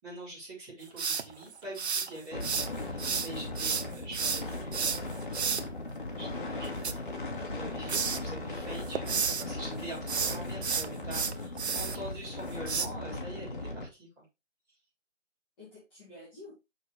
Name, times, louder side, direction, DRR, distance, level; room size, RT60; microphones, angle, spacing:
voice 1, 0.0-5.7 6.2-7.0 7.5-14.2, right 1 dB, 10° right, -9 dB, 3.7 m, -45 dB
sound 1, 1.0-2.7 3.0-5.6 6.6-7.6 7.9-8.2 8.7-9.5 10.0-12.0 12.7-12.9, right 6 dB, 60° right, 0.8 m, -31 dB
sound 2, 2.3-13.9, left 2 dB, 45° left, 1.8 m, -38 dB
voice 2, 11.4-12.2 13.1-13.5 15.6-16.5, left 3 dB, 10° left, -11 dB, 1.7 m, -52 dB
6.6 x 6.1 x 3.3 m, 0.24 s
hypercardioid pair, 170°, 36 cm